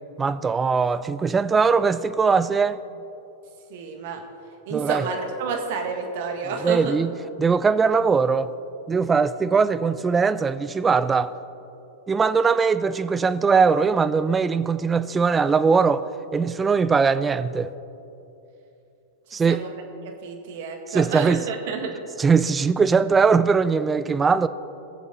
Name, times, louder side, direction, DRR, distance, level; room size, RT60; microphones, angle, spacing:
voice 1, 0.2-2.8 4.7-5.1 6.6-7.1 7.4-8.5 8.9-11.3 12.1-16.0 16.3-17.7 19.3-19.6 20.9-21.4 22.2-24.5, right 5 dB, 15° right, 14 dB, 0.4 m, -20 dB
voice 2, 3.7-4.2 4.7-7.0 19.5-19.7 20.0-21.9, right 5 dB, 55° right, 4 dB, 1.6 m, -30 dB
20.0 x 7.1 x 3.9 m, 2.9 s
hypercardioid pair, 100°, 0 cm